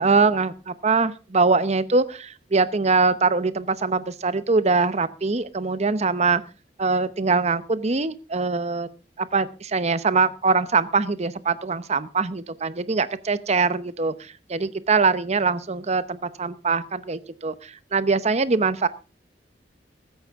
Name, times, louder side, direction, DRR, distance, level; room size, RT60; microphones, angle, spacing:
voice 1, 0.0-6.4 6.8-8.9 9.2-18.9, right 4 dB, 40° right, 15 dB, 0.8 m, -23 dB
15.5 x 13.5 x 3.6 m, 0.33 s
head